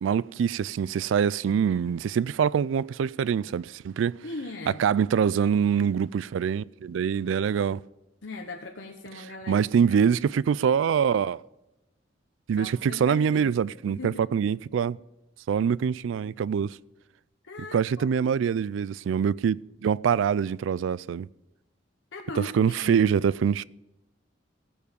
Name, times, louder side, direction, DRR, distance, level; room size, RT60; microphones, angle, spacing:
voice 1, 0.0-4.2 4.8-7.8 9.5-11.4 12.5-15.0 15.5-16.8 17.7-21.3 22.4-23.6, right 7 dB, 75° right, 0.3 m, -24 dB
voice 2, 4.2-4.8 8.2-10.1 12.6-13.6 13.9-14.1 17.4-18.3 22.1-23.0, left 2 dB, 70° left, 1.1 m, -39 dB
17.0 x 7.1 x 5.2 m
head